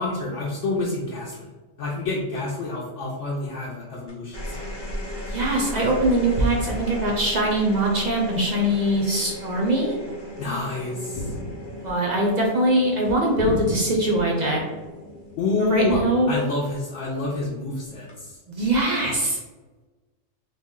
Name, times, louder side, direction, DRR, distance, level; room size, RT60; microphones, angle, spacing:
voice 1, 0.0-1.5 1.8-4.7 10.4-11.3 15.4-16.0 16.3-18.4, left 3 dB, 70° left, -5 dB, 0.9 m, -28 dB
sound 1, 4.1-16.7 17.9-18.4, equal, 25° left, 0.6 m, -37 dB
voice 2, 5.2-10.0 11.8-14.6 15.6-16.3 18.5-19.4, right 1 dB, 55° right, -2 dB, 0.5 m, -22 dB
sound 2, 11.1-11.9 13.4-14.2 15.9-16.0, left 1 dB, 90° left, 1.1 m, -32 dB
3.3 x 2.1 x 3.6 m, 1.3 s
omnidirectional pair, 1.3 m